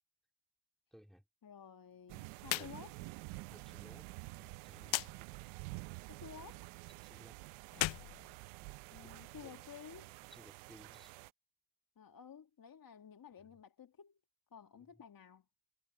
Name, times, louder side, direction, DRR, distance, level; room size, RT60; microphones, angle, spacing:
voice 1, 0.9-1.2 2.5-2.9 3.5-5.2 7.0-7.4 9.4-9.5 10.3-11.2 13.4-13.6 14.7-14.9, equal, ahead, 3.9 m, -60 dB
voice 2, 1.4-3.0 6.0-6.7 8.9-10.2 12.0-14.2 14.5-15.4, left 7 dB, 45° left, 1.8 m, -53 dB
sound 1, 2.1-11.3, right 25 dB, 85° right, 0.8 m, -50 dB
sound 2, 2.4-2.7 3.0-3.1 4.9-5.1 7.7-9.0, left 17 dB, 70° left, 0.8 m, -37 dB
hypercardioid pair, 40°, 47 cm